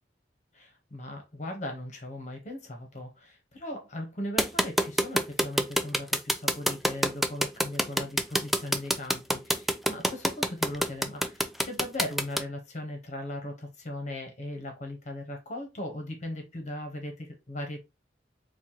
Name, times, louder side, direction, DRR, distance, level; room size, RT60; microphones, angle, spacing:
voice 1, 0.5-17.8, left 1 dB, 45° left, 1.1 m, -38 dB
sound 1, 4.4-12.4, equal, ahead, 0.3 m, -25 dB
4.2 x 2.4 x 2.8 m
head